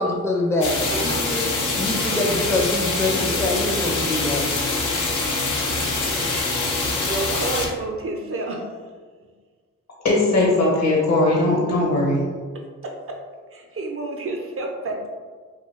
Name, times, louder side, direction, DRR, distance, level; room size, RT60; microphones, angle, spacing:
voice 1, 0.0-0.7 1.0-1.5 1.8-4.4, left 2 dB, 10° left, -2 dB, 0.5 m, -24 dB
sound 1, 0.6-7.7, left 3 dB, 85° left, 0.6 m, -24 dB
voice 2, 0.9-1.3 7.0-8.7 12.5-13.2 13.5-15.1, right 2 dB, 50° right, 1 dB, 0.5 m, -30 dB
voice 3, 10.0-12.2, left 2 dB, 60° left, -3 dB, 1.0 m, -19 dB
2.7 x 2.2 x 3.1 m, 1.5 s
cardioid pair, 65°, 30 cm